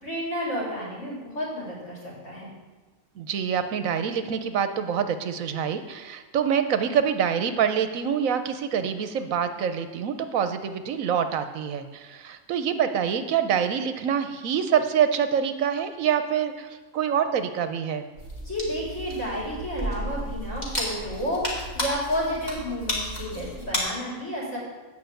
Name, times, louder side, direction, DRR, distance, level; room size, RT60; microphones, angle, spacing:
voice 1, 0.0-2.5 18.4-21.4 21.7-24.6, equal, 60° left, -6 dB, 4.1 m, -31 dB
voice 2, 3.2-18.0, right 8 dB, 80° right, 9 dB, 1.1 m, -26 dB
sound 1, 18.2-23.8, equal, 30° left, 2.5 m, -33 dB
9.2 x 5.6 x 7.7 m, 1.3 s
omnidirectional pair, 1.4 m